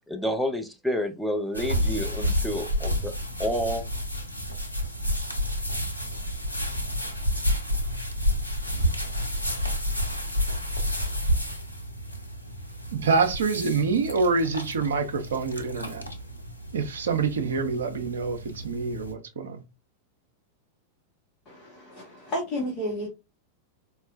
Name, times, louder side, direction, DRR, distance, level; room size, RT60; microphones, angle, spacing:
voice 1, 0.1-3.8, equal, ahead, 0.6 m, -29 dB
sound 1, 1.5-19.1, equal, 85° left, 0.5 m, -30 dB
voice 2, 12.9-16.0 16.7-19.6, right 4 dB, 65° right, 0.6 m, -26 dB
voice 3, 21.5-23.1, equal, 30° left, 1.0 m, -32 dB
4.1 x 2.2 x 2.4 m
figure-of-eight pair, 90°, 0 cm